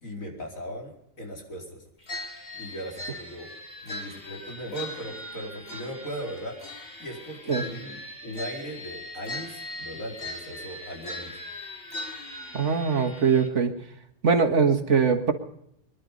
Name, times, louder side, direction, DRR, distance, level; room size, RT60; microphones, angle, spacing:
voice 1, 0.0-1.8 2.5-3.5 3.8-11.4, equal, 90° left, -1 dB, 4.9 m, -38 dB
sound 1, 2.1-13.5, left 2 dB, 45° left, 2.9 m, -39 dB
voice 2, 12.5-13.7 14.2-15.3, right 5 dB, 65° right, 5 dB, 1.9 m, -22 dB
23.0 x 12.0 x 5.3 m, 0.74 s
omnidirectional pair, 1.4 m